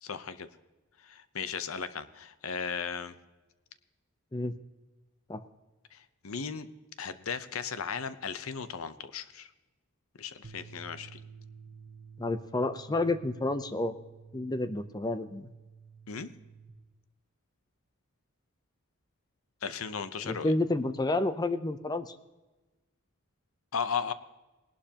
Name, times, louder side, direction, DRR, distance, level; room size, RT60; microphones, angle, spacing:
voice 1, 0.0-0.5 1.0-3.2 5.9-6.7 7.0-9.5 10.2-11.2 16.1-16.3 19.6-20.5 23.7-24.1, left 6 dB, 70° left, 12 dB, 0.8 m, -36 dB
sound 1, 10.4-16.7, right 6 dB, 75° right, 1.2 m, -51 dB
voice 2, 12.2-13.9 14.3-15.5 20.2-22.1, left 2 dB, 20° left, 11 dB, 0.6 m, -30 dB
20.0 x 11.5 x 2.9 m, 1.1 s
head